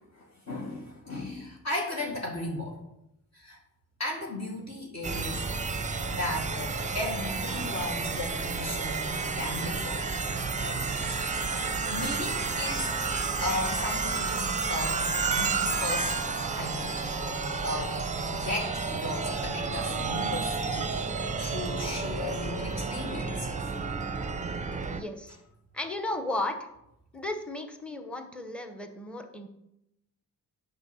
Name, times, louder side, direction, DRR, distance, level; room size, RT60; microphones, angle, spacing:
voice 1, 0.1-2.8 3.3-3.6 4.0-5.5 6.1-10.1 10.6-11.5 11.9-12.9 13.4-16.3 16.6-17.0 17.6-18.0 18.3-23.6, left 1 dB, 40° left, -2 dB, 2.2 m, -36 dB
sound 1, 5.0-25.0, right 4 dB, 20° right, 0.8 m, -31 dB
voice 2, 24.9-25.4 25.7-26.7 27.1-29.5, left 2 dB, 5° left, 6 dB, 1.1 m, -34 dB
8.0 x 5.6 x 7.2 m, 0.83 s
cardioid pair, 100°, 40 cm